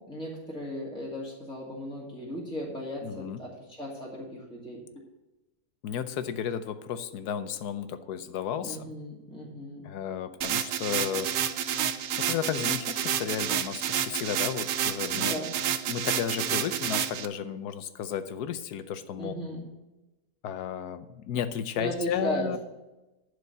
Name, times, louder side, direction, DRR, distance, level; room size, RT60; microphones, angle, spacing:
voice 1, 0.0-4.8 8.6-9.9 15.1-15.5 19.2-19.6 21.8-22.5, equal, 5° left, -5 dB, 2.2 m, -36 dB
voice 2, 3.0-3.4 5.8-8.9 9.8-11.3 12.2-15.4 15.9-19.3 20.4-22.6, left 8 dB, 85° left, 11 dB, 1.3 m, -33 dB
sound 1, 10.4-17.3, right 9 dB, 75° right, 1.1 m, -29 dB
11.0 x 5.0 x 8.1 m, 1.0 s
omnidirectional pair, 1.6 m